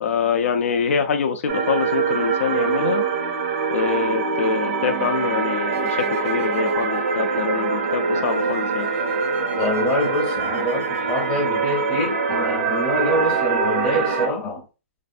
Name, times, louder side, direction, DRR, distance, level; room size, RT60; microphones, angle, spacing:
voice 1, 0.0-3.0 3.7-8.9, left 6 dB, 70° left, 0.5 m, -24 dB
sound 1, 1.5-14.3, right 5 dB, 50° right, 0.6 m, -24 dB
sound 2, 5.7-11.9 12.4-12.5, right 4 dB, 75° right, 0.9 m, -38 dB
voice 2, 9.5-14.6, left 1 dB, 15° left, 0.7 m, -25 dB
3.2 x 2.5 x 2.5 m
hypercardioid pair, 165°, 8 cm